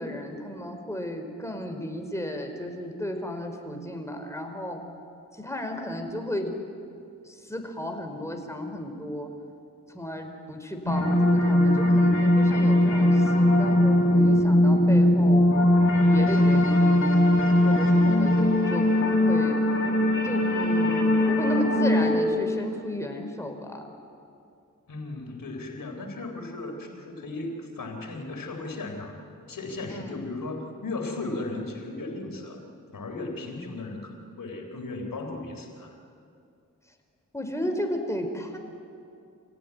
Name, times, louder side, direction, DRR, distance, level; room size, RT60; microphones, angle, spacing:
voice 1, 0.0-4.8 5.3-6.5 7.2-9.3 9.9-15.4 16.1-17.1 17.6-18.9 19.2-19.6 20.2-23.8 29.9-30.2 37.3-38.6, equal, 10° left, 4 dB, 4.7 m, -34 dB
sound 1, 10.9-22.2, left 1 dB, 40° left, 6.3 m, -20 dB
voice 2, 24.9-29.2 29.5-32.6 32.9-36.0, left 2 dB, 80° left, 4 dB, 3.6 m, -36 dB
27.0 x 16.5 x 9.8 m, 2.5 s
cardioid pair, 40°, 33 cm